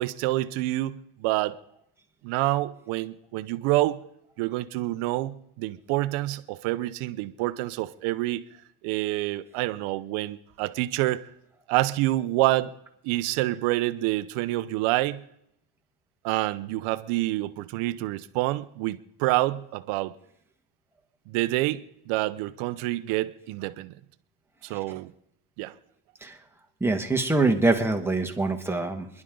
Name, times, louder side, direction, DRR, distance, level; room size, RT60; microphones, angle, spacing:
voice 1, 0.0-1.6 2.2-4.0 4.4-8.4 8.8-11.2 11.7-12.7 13.0-15.2 16.2-20.1 21.3-23.9 24.6-25.1 25.6-25.7, right 17 dB, 75° right, 12 dB, 1.0 m, -27 dB
voice 2, 26.8-29.1, right 2 dB, 5° right, 3 dB, 1.8 m, -24 dB
27.5 x 11.0 x 3.9 m, 0.77 s
supercardioid pair, 100°, 50 cm